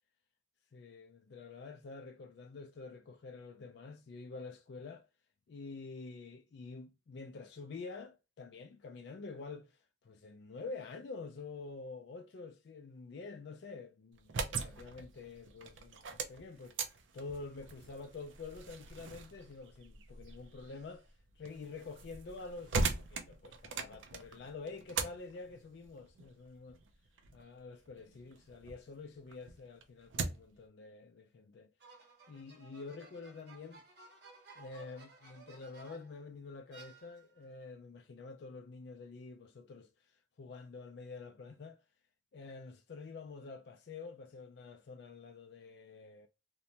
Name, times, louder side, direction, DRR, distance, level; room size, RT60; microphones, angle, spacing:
voice 1, 0.7-5.1 5.5-21.1 21.4-26.8 27.3-31.7 32.3-33.8 34.5-41.8 42.3-46.3, left 4 dB, 65° left, 0.4 m, -48 dB
sound 1, 14.1-28.8 29.2-30.6, right 4 dB, 80° right, 0.5 m, -41 dB
sound 2, 31.8-36.2 36.7-37.5, right 4 dB, 60° right, 0.8 m, -57 dB
2.9 x 2.2 x 2.7 m
head